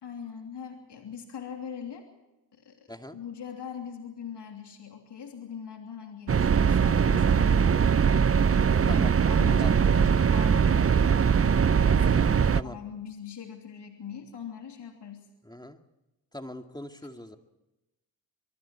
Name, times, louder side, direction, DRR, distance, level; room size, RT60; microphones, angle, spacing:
voice 1, 0.0-2.1 2.5-2.8 3.1-7.8 8.8-11.0 11.9-15.3, left 7 dB, 55° left, 3 dB, 3.2 m, -41 dB
sound 1, 6.3-12.6, right 7 dB, 30° right, 0.7 m, -21 dB
voice 2, 9.5-9.9 12.0-12.8 15.4-15.8 16.3-17.4, left 1 dB, 10° left, 6 dB, 2.2 m, -41 dB
24.5 x 23.5 x 4.5 m, 0.98 s
hypercardioid pair, 45°, 50 cm